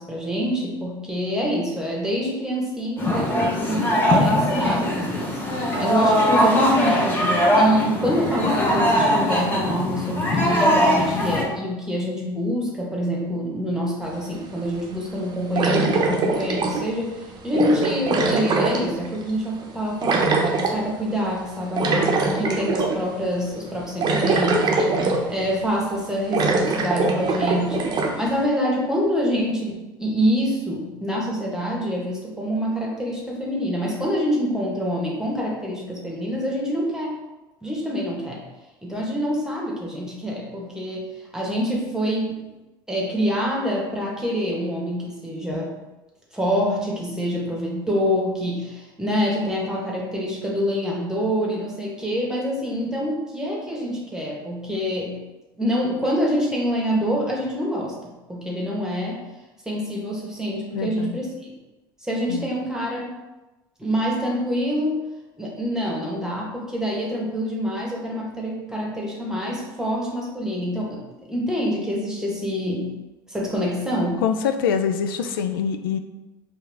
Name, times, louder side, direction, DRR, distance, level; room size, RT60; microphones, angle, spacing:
voice 1, 0.0-37.2 37.6-38.4 38.8-41.1 41.3-42.5 42.9-45.7 46.3-55.2 55.6-59.2 59.6-61.5 62.0-63.1 63.8-65.0 65.4-72.9 73.3-74.2, equal, 5° right, -2 dB, 1.3 m, -26 dB
sound 1, 3.0-11.4, equal, 15° left, 1.3 m, -20 dB
sound 2, 14.2-14.3 15.6-17.0 17.5-19.3 20.0-20.8 21.8-23.0 23.4-23.5 24.0-25.5 25.8-25.9 26.3-28.2, right 3 dB, 40° right, 0.7 m, -22 dB
voice 2, 60.7-61.2 62.3-62.5 74.2-76.0, left 7 dB, 80° left, 8 dB, 0.4 m, -24 dB
4.6 x 2.7 x 3.4 m, 1.1 s
hypercardioid pair, 80°, 12 cm